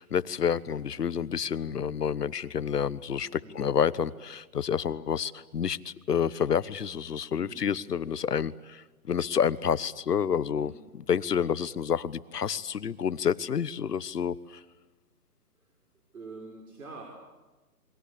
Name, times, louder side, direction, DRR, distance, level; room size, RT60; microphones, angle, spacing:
voice 1, 0.0-14.6, left 7 dB, 85° left, 17 dB, 1.2 m, -29 dB
voice 2, 16.1-17.1, right 3 dB, 65° right, 0 dB, 6.1 m, -45 dB
29.0 x 22.0 x 8.6 m, 1.2 s
hypercardioid pair, 175°, 46 cm